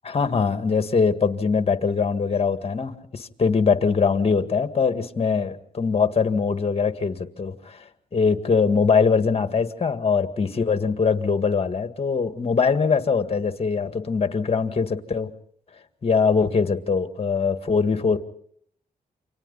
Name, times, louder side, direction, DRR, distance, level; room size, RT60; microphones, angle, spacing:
voice 1, 0.0-15.3 16.0-18.2, left 5 dB, 40° left, 8 dB, 1.9 m, -22 dB
28.5 x 25.5 x 4.1 m, 0.64 s
cardioid pair, 80°, 15 cm